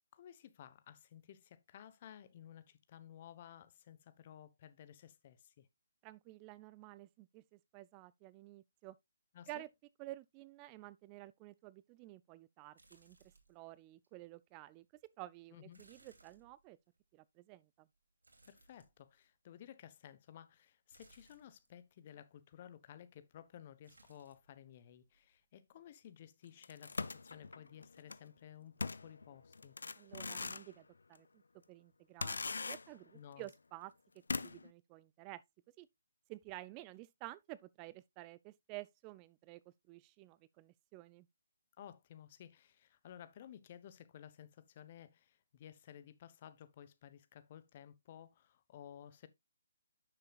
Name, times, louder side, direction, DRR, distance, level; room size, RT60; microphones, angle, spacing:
voice 1, 0.1-5.7 9.3-9.6 15.5-15.8 18.5-29.7 33.1-33.5 41.8-49.3, left 10 dB, 40° left, 1.0 m, -55 dB
voice 2, 6.0-9.0 9.5-9.7 10.0-13.2 13.5-14.9 15.2-16.8 17.1-17.9 30.0-31.3 31.7-32.4 32.7-33.9 34.3-35.4 35.8-35.9 36.3-39.6 39.9-41.3, right 18 dB, 25° right, 0.4 m, -52 dB
sound 1, 12.8-13.7 14.0-14.1 15.7-17.0 18.2-19.3 20.9-21.7 23.8-24.5 24.8-25.4 25.8-25.9, right 2 dB, 80° right, 2.6 m, -66 dB
sound 2, 26.6-28.2 28.8-30.7 31.1-31.2 32.2-33.1 33.5-33.6 34.3-34.7, left 4 dB, 75° left, 0.5 m, -41 dB
9.7 x 6.8 x 2.4 m
figure-of-eight pair, 145°, 0 cm